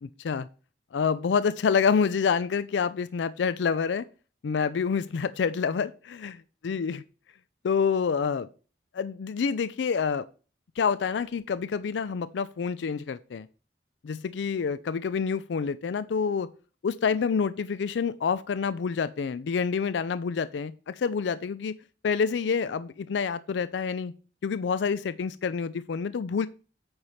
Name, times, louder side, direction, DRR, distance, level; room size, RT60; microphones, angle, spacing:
voice 1, 0.0-0.5 0.9-4.1 4.4-5.9 6.6-7.0 7.6-8.5 8.9-10.3 10.8-13.5 14.0-16.5 16.8-21.7 22.0-24.1 24.4-26.5, left 6 dB, 90° left, 15 dB, 0.4 m, -27 dB
8.8 x 3.3 x 5.6 m, 0.36 s
head